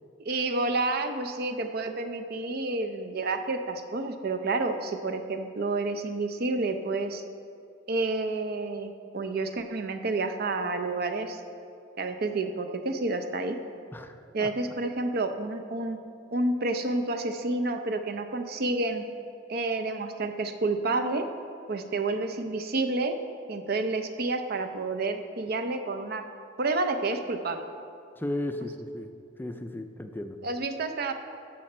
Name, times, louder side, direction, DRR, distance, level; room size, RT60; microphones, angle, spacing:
voice 1, 0.2-7.2 7.9-11.4 12.0-13.6 14.3-16.0 16.3-19.0 19.5-21.2 21.7-23.1 23.5-26.2 26.6-27.6 30.4-31.1, right 2 dB, 55° right, 7 dB, 0.6 m, -29 dB
voice 2, 28.2-29.1 29.4-30.4, left 1 dB, 10° left, 7 dB, 0.4 m, -34 dB
12.5 x 6.6 x 4.3 m, 2.4 s
head